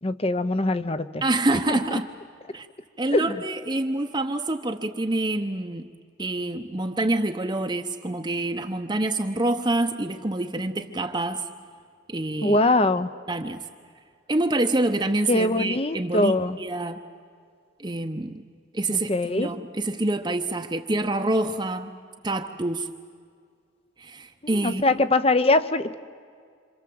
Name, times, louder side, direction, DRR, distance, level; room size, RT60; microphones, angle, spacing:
voice 1, 0.0-1.2 1.7-2.0 3.1-3.4 12.4-13.1 15.3-16.6 18.9-19.5 24.4-26.0, left 2 dB, 30° left, 12 dB, 0.8 m, -23 dB
voice 2, 1.2-2.1 2.5-2.7 3.0-5.9 6.2-11.4 12.1-12.6 13.3-13.6 14.3-16.3 16.6-17.0 17.8-18.3 18.7-21.9 22.2-22.9 24.0-24.9, right 2 dB, 20° right, 4 dB, 0.8 m, -26 dB
27.0 x 27.0 x 7.8 m, 2.1 s
head